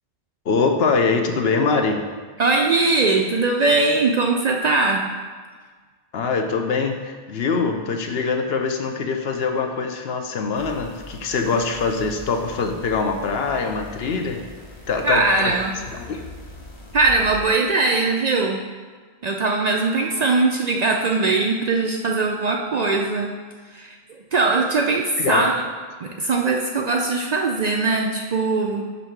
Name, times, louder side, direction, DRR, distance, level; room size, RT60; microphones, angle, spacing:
voice 1, 0.5-2.1 6.1-14.4 14.9-15.5 15.9-16.2 25.2-25.5, left 4 dB, 75° left, 4 dB, 0.9 m, -23 dB
voice 2, 2.4-5.0 15.0-15.7 16.9-18.6 19.2-23.3 23.7-24.0 24.3-25.6 26.0-28.8, right 3 dB, 55° right, 1 dB, 0.5 m, -20 dB
sound 1, 10.6-17.4, left 1 dB, 30° left, 0.7 m, -41 dB
8.0 x 2.7 x 5.8 m, 1.5 s
omnidirectional pair, 1.1 m